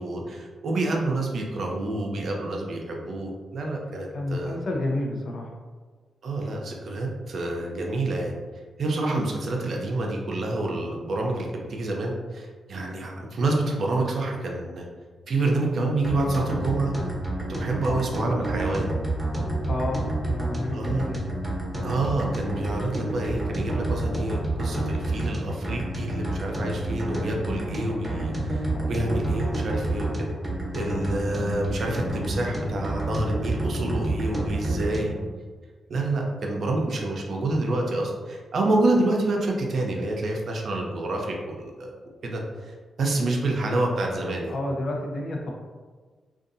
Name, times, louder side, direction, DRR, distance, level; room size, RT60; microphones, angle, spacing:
voice 1, 0.0-4.6 6.2-8.4 8.8-14.9 15.3-16.9 17.5-18.9 20.7-21.1 21.8-30.3 30.7-35.1 35.9-41.9 42.2-44.6, right 2 dB, 65° right, 0 dB, 0.5 m, -28 dB
voice 2, 4.1-5.5 17.9-18.1 19.7-21.2 28.6-28.8 43.1-43.3 44.5-45.5, left 2 dB, 65° left, -1 dB, 0.5 m, -30 dB
sound 1, 16.0-35.2, right 1 dB, 10° right, 0.8 m, -29 dB
2.5 x 2.3 x 2.6 m, 1.4 s
supercardioid pair, 50°, 0 cm